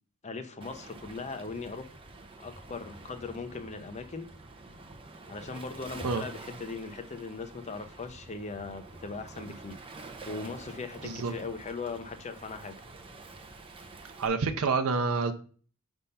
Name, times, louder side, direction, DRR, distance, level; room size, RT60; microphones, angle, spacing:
voice 1, 0.2-1.9 2.4-4.3 5.3-9.8 10.2-12.7, left 4 dB, 30° left, 8 dB, 0.7 m, -39 dB
Waves surf, 0.6-14.3, right 3 dB, 25° right, 0.7 m, -47 dB
voice 2, 11.0-11.3 14.2-15.3, right 4 dB, 70° right, 7 dB, 0.6 m, -28 dB
5.4 x 3.5 x 5.5 m, 0.41 s
head